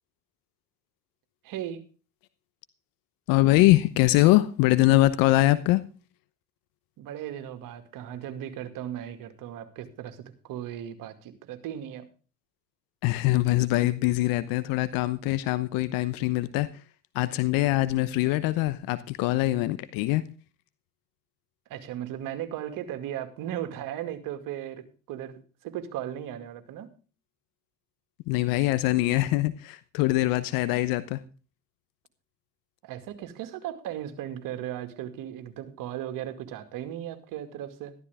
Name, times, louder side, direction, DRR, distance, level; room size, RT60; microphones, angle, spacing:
voice 1, 1.4-1.8 7.0-12.1 21.7-26.9 32.8-37.9, right 11 dB, 60° right, 2.3 m, -37 dB
voice 2, 3.3-5.8 13.0-16.8 17.1-20.2 28.3-31.2, left 17 dB, 65° left, 1.0 m, -23 dB
14.0 x 12.5 x 3.5 m
hypercardioid pair, 80°, 37 cm